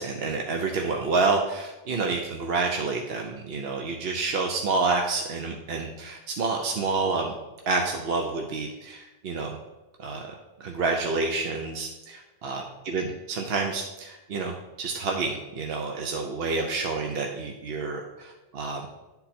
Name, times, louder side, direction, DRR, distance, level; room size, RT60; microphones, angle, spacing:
voice 1, 0.0-7.3 7.7-9.6 10.0-10.3 10.6-18.9, right 4 dB, 75° right, 2 dB, 0.9 m, -28 dB
9.9 x 4.0 x 4.2 m, 1.1 s
omnidirectional pair, 1.0 m